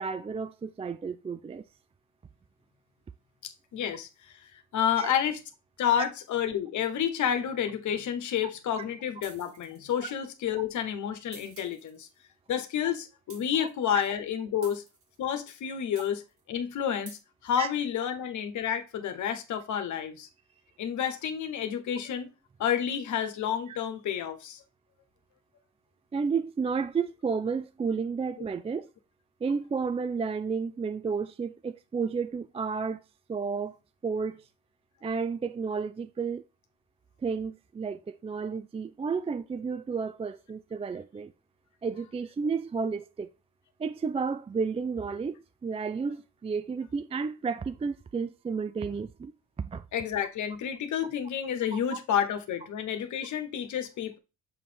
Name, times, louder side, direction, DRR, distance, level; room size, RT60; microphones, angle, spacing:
voice 1, 0.0-1.6 5.0-5.1 13.6-13.7 17.6-17.7 23.7-23.8 26.1-28.9 29.4-33.0 33.3-33.8 34.0-34.4 35.0-36.4 37.2-41.3 41.8-43.3 43.8-49.3 49.6-49.8 51.7-52.0, right 5 dB, 20° right, 0.4 m, -32 dB
voice 2, 3.4-4.4 4.7-5.4 5.8-12.1 12.5-14.8 15.2-16.2 16.5-20.3 20.8-22.3 22.6-24.6 49.9-54.2, left 9 dB, 75° left, 1.2 m, -30 dB
sound 1, 9.2-10.2 11.3-12.1 13.3-13.9 14.6-15.3 15.9-16.4 17.1-17.2, right 4 dB, 45° right, 2.3 m, -51 dB
7.5 x 3.2 x 4.3 m
cardioid pair, 90°, 30 cm